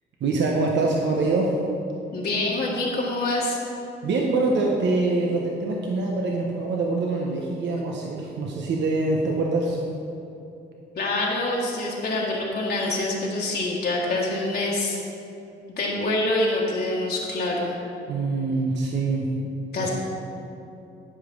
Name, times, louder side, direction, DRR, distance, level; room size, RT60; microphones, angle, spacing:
voice 1, 0.2-1.5 4.0-9.8 18.1-19.3 19.8-19.9, right 3 dB, 65° right, -1 dB, 1.0 m, -24 dB
voice 2, 2.1-3.6 10.9-15.0 15.7-17.8 19.7-19.9, left 2 dB, 55° left, -4 dB, 1.7 m, -26 dB
11.0 x 5.1 x 5.5 m, 2.7 s
cardioid pair, 90°, 20 cm